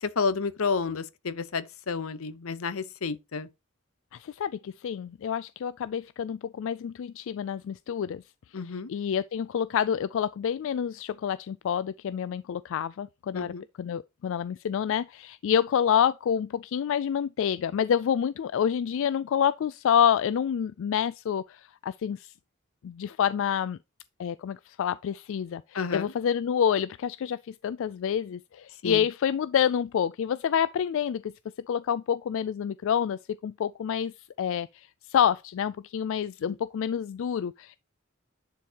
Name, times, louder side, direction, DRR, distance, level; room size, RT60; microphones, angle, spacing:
voice 1, 0.0-3.5 8.5-8.9 13.3-13.6 25.7-26.1 28.8-29.1 36.5-36.6, left 5 dB, 85° left, 0.8 m, -30 dB
voice 2, 4.2-8.2 8.9-22.3 22.8-23.8 24.2-31.3 31.7-34.1 34.4-37.8, left 8 dB, 65° left, 0.3 m, -28 dB
10.0 x 4.7 x 2.9 m
head